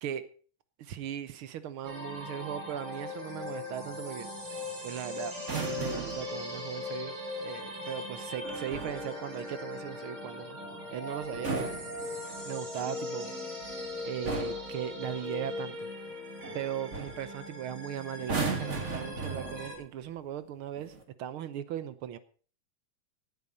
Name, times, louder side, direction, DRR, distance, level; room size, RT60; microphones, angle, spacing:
voice 1, 0.8-4.3 4.8-10.6 10.9-11.7 12.5-13.3 14.0-15.9 16.5-22.2, right 10 dB, 75° right, 13 dB, 1.2 m, -38 dB
sound 1, 1.8-19.7, left 2 dB, 50° right, 5.3 m, -39 dB
sound 2, 5.4-6.3 8.4-9.1 11.2-12.6 13.6-13.9 14.2-14.7 16.4-16.6 16.9-17.2 18.2-19.8 20.8-21.0, right 4 dB, 30° right, 1.7 m, -36 dB
18.0 x 8.9 x 5.3 m, 0.42 s
omnidirectional pair, 3.5 m